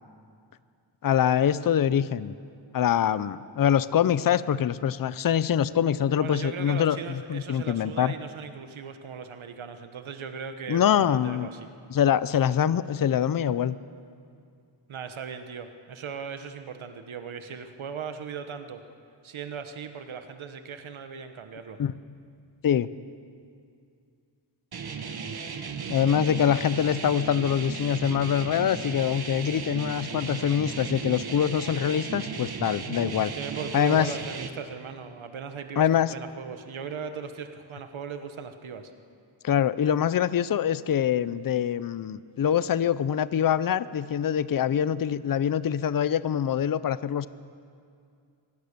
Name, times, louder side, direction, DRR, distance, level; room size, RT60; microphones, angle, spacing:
voice 1, 1.0-2.3 2.7-8.1 10.7-11.5 11.9-13.8 21.8-21.9 22.6-22.9 25.9-33.3 33.7-34.1 35.8-36.1 39.4-47.3, left 9 dB, 45° left, 16 dB, 0.5 m, -24 dB
voice 2, 6.2-11.7 14.9-18.8 19.2-21.8 33.2-38.9, right 6 dB, 85° right, 8 dB, 1.3 m, -38 dB
sound 1, 24.7-34.5, right 5 dB, 55° right, 1.3 m, -36 dB
25.0 x 17.5 x 6.7 m, 2.4 s
wide cardioid pair, 175°, 47 cm